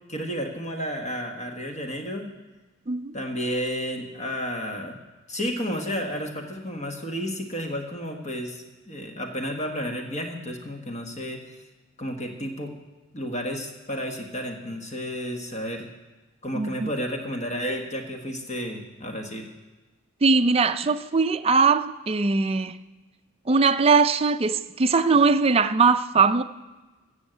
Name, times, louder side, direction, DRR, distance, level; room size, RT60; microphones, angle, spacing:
voice 1, 0.1-2.3 3.1-5.0 5.3-11.4 12.0-12.7 13.1-15.9 16.4-19.5, equal, 35° left, 1.4 m, -32 dB
voice 2, 16.5-16.9 20.2-22.8 23.5-26.4, right 4 dB, 30° right, 0.5 m, -20 dB
15.0 x 6.4 x 8.0 m
head